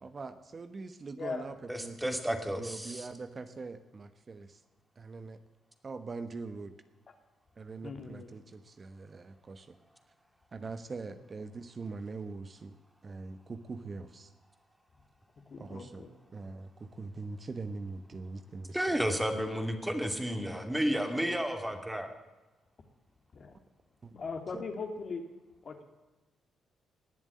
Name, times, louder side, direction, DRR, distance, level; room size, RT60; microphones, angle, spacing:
voice 1, 0.0-4.6 5.0-5.4 5.8-6.7 7.6-9.8 10.5-12.7 13.0-14.3 15.6-16.0 16.3-19.0 24.0-24.1 24.5-24.6, right 3 dB, 40° right, 10 dB, 1.2 m, -42 dB
voice 2, 1.2-1.5 7.8-8.3 15.5-16.1 21.7-21.8 23.3-23.6 24.1-25.2 25.6-25.8, left 4 dB, 50° left, 5 dB, 2.5 m, -39 dB
voice 3, 1.7-3.1 18.7-22.1, equal, 10° right, 6 dB, 2.6 m, -32 dB
19.5 x 7.4 x 8.7 m, 1.1 s
supercardioid pair, 55°, 0 cm